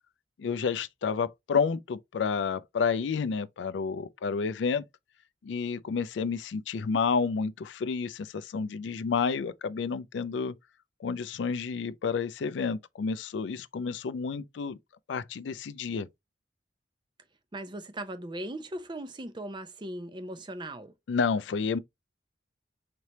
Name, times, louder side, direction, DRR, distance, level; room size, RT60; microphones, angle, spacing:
voice 1, 0.4-4.8 5.4-10.5 11.0-14.8 15.1-16.1 21.1-21.8, left 5 dB, 85° left, 0.4 m, -30 dB
voice 2, 17.5-20.9, right 1 dB, 25° right, 0.5 m, -38 dB
4.2 x 3.3 x 2.7 m
head